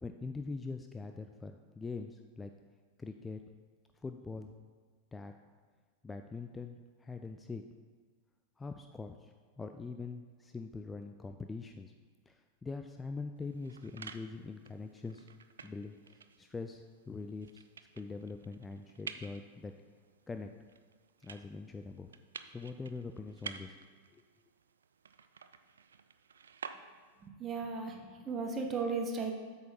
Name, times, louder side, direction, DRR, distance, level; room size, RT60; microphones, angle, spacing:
voice 1, 0.0-2.5 3.0-3.4 4.0-4.5 5.1-5.3 6.0-7.6 8.6-11.9 12.3-15.3 15.6-17.6 17.9-19.7 20.3-20.5 21.2-22.1 22.4-23.8 24.1-24.2, left 4 dB, 15° left, 6 dB, 0.4 m, -43 dB
sound 1, 13.4-27.3, right 6 dB, 70° right, 0.4 m, -51 dB
voice 2, 27.2-29.3, right 4 dB, 25° right, 3 dB, 1.1 m, -36 dB
8.0 x 6.5 x 4.6 m, 1.6 s
figure-of-eight pair, 90°, 0 cm